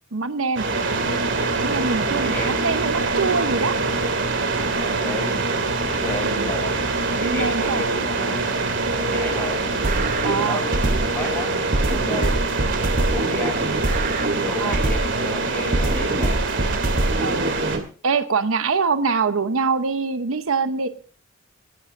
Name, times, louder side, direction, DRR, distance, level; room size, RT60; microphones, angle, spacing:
voice 1, 0.1-0.7 1.6-3.8 6.3-6.5 7.2-7.8 10.2-10.6 14.6-14.8 17.2-17.5 18.0-20.9, right 4 dB, 75° right, 10 dB, 0.8 m, -24 dB
sound 1, 0.6-17.8, right 3 dB, 60° right, 2.3 m, -24 dB
voice 2, 2.1-2.7 4.8-5.5 5.9-6.8 7.1-8.4 9.0-9.9 10.2-12.4 13.0-13.7 14.3-16.5, left 1 dB, 10° left, -1 dB, 7.2 m, -32 dB
sound 2, 9.8-11.3 11.7-15.3 15.7-17.8, right 2 dB, 40° right, 0.9 m, -24 dB
26.5 x 12.0 x 2.6 m, 0.39 s
head